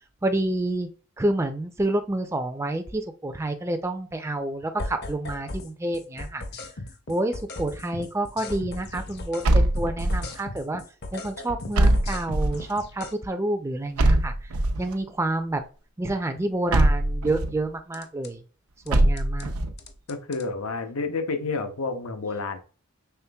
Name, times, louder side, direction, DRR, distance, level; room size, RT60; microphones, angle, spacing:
voice 1, 0.2-0.9 1.2-6.4 7.1-10.8 11.1-14.5 14.8-15.6 16.0-18.4 18.9-19.5, right 1 dB, 10° right, 7 dB, 0.4 m, -28 dB
sound 1, 4.8-5.7 5.9-9.5 9.8-13.1 17.9-18.3 18.9-19.5 19.8-20.5, left 2 dB, 50° left, 0.6 m, -37 dB
sound 2, 9.4-10.4 11.7-12.7 14.0-14.9 16.7-17.6 18.9-19.8, right 1 dB, 85° right, 0.6 m, -22 dB
voice 2, 20.1-22.6, left 3 dB, 85° left, 7 dB, 0.7 m, -30 dB
5.7 x 3.4 x 2.2 m, 0.37 s
head